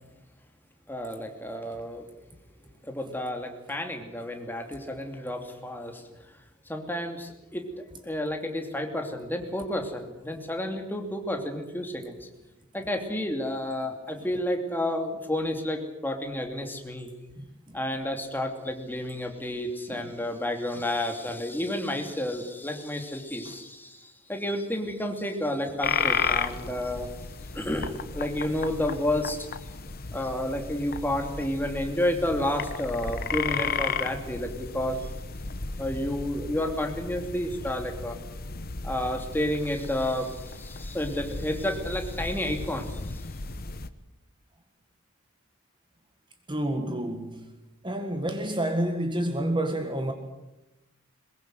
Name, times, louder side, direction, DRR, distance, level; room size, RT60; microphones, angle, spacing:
voice 1, 0.9-2.0 2.8-6.0 6.7-12.3 12.7-17.1 17.7-27.1 27.5-29.5 30.1-35.1 35.8-38.2 38.8-43.2, left 1 dB, 10° left, 2.7 m, -31 dB
voice 2, 17.4-17.8 19.9-20.1 20.8-20.9 23.5-23.6 46.5-47.5 47.8-50.1, right 1 dB, 20° right, 1.7 m, -30 dB
sound 1, 25.8-43.9, left 5 dB, 45° left, 1.1 m, -34 dB
22.5 x 21.5 x 7.9 m
head